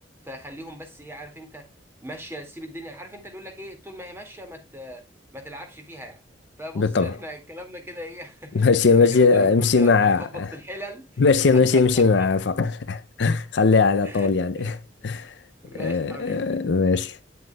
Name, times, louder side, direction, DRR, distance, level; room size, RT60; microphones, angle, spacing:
voice 1, 0.2-1.7 2.0-5.0 5.3-6.2 6.6-11.2 11.5-11.8 12.2-12.3 14.0-14.3 14.5-14.8 15.6-16.6, equal, 15° right, 2.0 m, -40 dB
voice 2, 6.8-7.2 8.5-10.5 11.2-14.8 15.0-15.4 15.8-17.2, left 4 dB, 65° left, 0.5 m, -20 dB
9.4 x 7.8 x 2.3 m
head